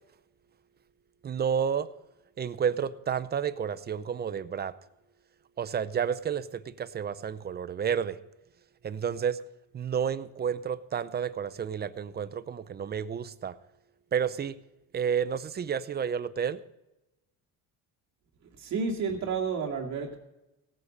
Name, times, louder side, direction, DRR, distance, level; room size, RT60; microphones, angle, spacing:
voice 1, 1.2-1.9 2.4-4.7 5.6-8.2 8.8-9.4 9.7-13.5 14.1-14.6 14.9-16.6, right 7 dB, 30° right, 15 dB, 0.6 m, -30 dB
voice 2, 18.6-20.2, right 5 dB, 55° right, 0 dB, 2.5 m, -31 dB
18.0 x 8.2 x 5.4 m, 0.96 s
cardioid pair, 130°, 34 cm